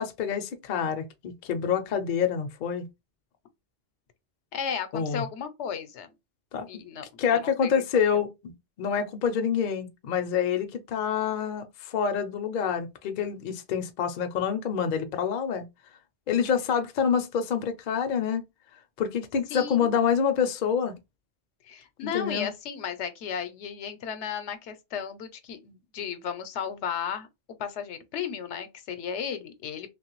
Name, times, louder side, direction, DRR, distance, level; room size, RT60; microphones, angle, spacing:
voice 1, 0.0-2.9 4.9-5.2 6.5-6.7 7.2-8.5 8.8-15.7 16.3-18.4 19.0-21.0 22.0-22.5, left 7 dB, 55° left, 0.6 m, -27 dB
voice 2, 4.5-6.1 6.7-7.0 7.3-8.0 19.5-19.9 21.6-27.3 27.6-29.9, left 7 dB, 80° left, 0.9 m, -34 dB
3.1 x 2.3 x 2.9 m
omnidirectional pair, 1.2 m